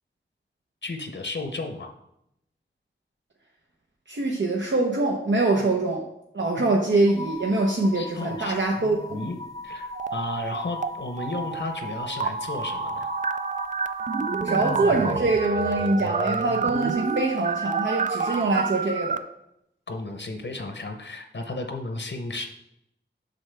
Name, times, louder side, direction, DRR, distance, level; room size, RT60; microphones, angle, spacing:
voice 1, 0.8-1.9 5.5-5.6 6.6-6.7 7.9-9.4 9.6-13.1 19.9-22.5, left 2 dB, 65° left, 5 dB, 0.8 m, -34 dB
voice 2, 4.1-6.1 6.3-9.3 14.4-19.2, right 2 dB, 65° right, -1 dB, 0.9 m, -24 dB
sound 1, 7.1-15.2, left 3 dB, 20° left, 0.7 m, -40 dB
sound 2, 9.9-10.9 11.2-19.2, right 5 dB, 40° right, 0.4 m, -29 dB
7.7 x 5.8 x 3.4 m, 0.80 s
wide cardioid pair, 70°, 20 cm